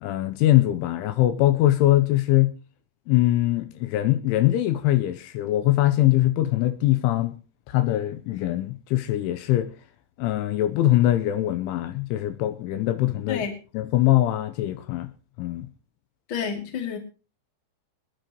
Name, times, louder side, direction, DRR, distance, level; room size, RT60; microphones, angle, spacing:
voice 1, 0.0-2.5 3.1-7.4 7.7-9.7 10.2-13.4 13.7-15.1 15.4-15.7, left 15 dB, 80° left, 3.2 m, -22 dB
voice 2, 16.3-17.0, left 7 dB, 35° left, 2.3 m, -29 dB
27.0 x 10.0 x 3.0 m
omnidirectional pair, 5.7 m